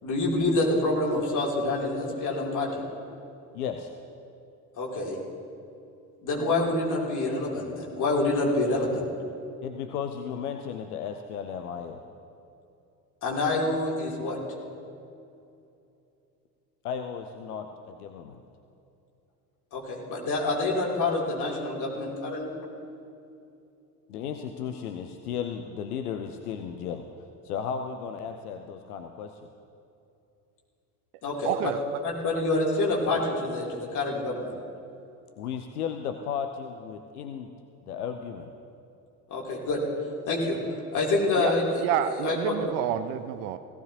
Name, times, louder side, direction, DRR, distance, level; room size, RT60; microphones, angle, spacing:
voice 1, 0.0-2.8 4.8-5.2 6.2-9.0 13.2-14.4 19.7-22.5 31.2-31.5 32.0-34.5 39.3-39.8 40.3-40.6 40.9-41.6 42.2-42.5, left 2 dB, 40° left, -3 dB, 3.2 m, -27 dB
voice 2, 3.5-3.9 9.6-12.0 16.8-18.4 24.1-27.1 27.4-29.5 35.4-37.5 37.8-38.5, left 7 dB, 65° left, 6 dB, 0.8 m, -35 dB
voice 3, 31.4-32.0 32.3-32.4 41.1-43.6, right 11 dB, 50° right, 11 dB, 0.6 m, -30 dB
17.5 x 15.5 x 2.9 m, 2.6 s
figure-of-eight pair, 65°, 48 cm